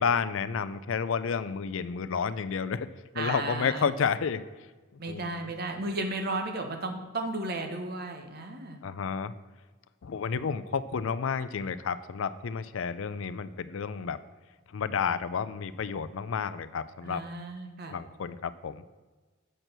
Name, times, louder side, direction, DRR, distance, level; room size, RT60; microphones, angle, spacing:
voice 1, 0.0-2.9 3.1-4.4 5.1-5.5 8.8-9.3 10.0-14.2 14.7-17.2 17.9-18.8, left 6 dB, 65° left, 14 dB, 0.4 m, -31 dB
voice 2, 3.2-3.8 5.0-8.8 17.0-18.0, right 2 dB, 50° right, 4 dB, 1.0 m, -34 dB
7.6 x 4.5 x 6.6 m, 1.3 s
head